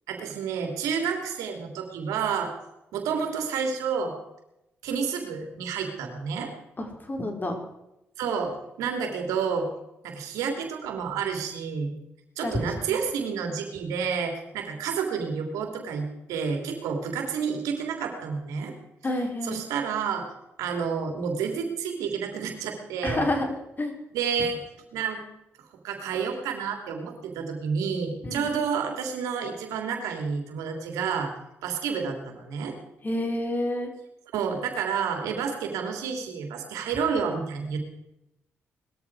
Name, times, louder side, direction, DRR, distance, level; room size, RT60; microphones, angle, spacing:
voice 1, 0.1-2.5 2.9-4.1 4.8-6.5 8.2-9.7 10.0-11.9 12.4-18.7 19.5-20.2 20.6-23.3 24.1-24.6 24.9-25.2 25.8-31.3 31.6-32.7 34.3-37.8, right 6 dB, 85° right, 4 dB, 3.0 m, -29 dB
voice 2, 6.8-7.6 12.4-13.0 19.0-19.7 23.0-23.9 28.2-28.5 33.0-33.9, left 1 dB, 35° left, 3 dB, 4.6 m, -29 dB
20.0 x 14.0 x 4.7 m, 0.89 s
supercardioid pair, 55°, 5 cm